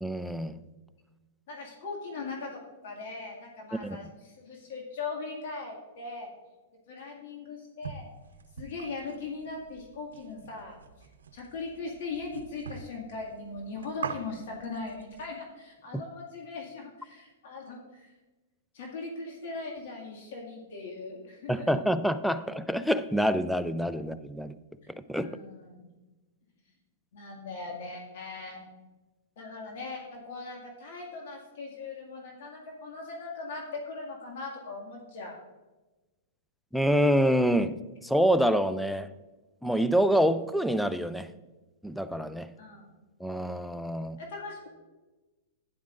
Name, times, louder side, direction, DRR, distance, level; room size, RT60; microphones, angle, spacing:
voice 1, 0.0-0.6 3.8-4.0 21.5-24.5 25.1-25.4 36.7-39.1 39.6-41.3 41.8-42.5 43.2-44.2, equal, ahead, 12 dB, 0.4 m, -26 dB
voice 2, 1.5-6.3 6.9-8.1 8.6-10.8 11.3-18.1 18.7-21.7 25.2-25.9 27.1-28.7 29.4-35.4 42.6-42.9 44.2-44.7, left 3 dB, 60° left, -1 dB, 1.9 m, -39 dB
sound 1, 7.8-15.3, right 6 dB, 90° right, 0.6 m, -44 dB
11.5 x 9.9 x 2.5 m, 1.1 s
hypercardioid pair, 130°, 0 cm